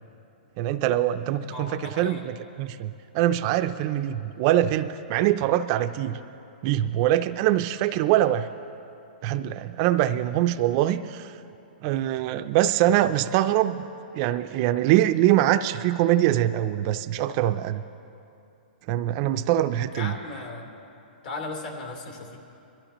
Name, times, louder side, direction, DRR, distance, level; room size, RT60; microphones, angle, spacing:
voice 1, 0.6-6.2 6.6-8.5 9.2-11.3 11.8-13.9 14.1-17.8 18.9-20.1, right 13 dB, 35° right, 10 dB, 0.4 m, -23 dB
voice 2, 1.5-2.3 19.9-20.7 21.2-22.4, left 3 dB, 60° left, 2 dB, 2.8 m, -36 dB
22.5 x 13.5 x 3.0 m, 2.7 s
hypercardioid pair, 155°, 5 cm